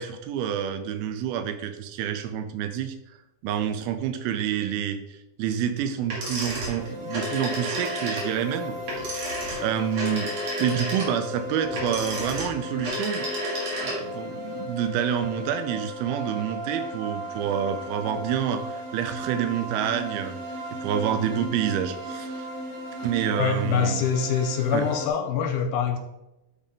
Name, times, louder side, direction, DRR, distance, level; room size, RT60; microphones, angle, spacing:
voice 1, 0.0-3.0 3.4-10.3 10.6-13.3 13.8-20.4 20.8-22.5 23.0-24.0 24.7-24.9, right 9 dB, 85° right, 9 dB, 2.5 m, -28 dB
sound 1, 6.1-14.2, equal, 50° right, 2.7 m, -32 dB
sound 2, 6.8-25.1, left 1 dB, 65° right, 2.1 m, -36 dB
voice 2, 23.4-26.0, left 7 dB, 80° left, 5 dB, 2.3 m, -25 dB
10.0 x 4.1 x 3.6 m, 0.94 s
omnidirectional pair, 4.4 m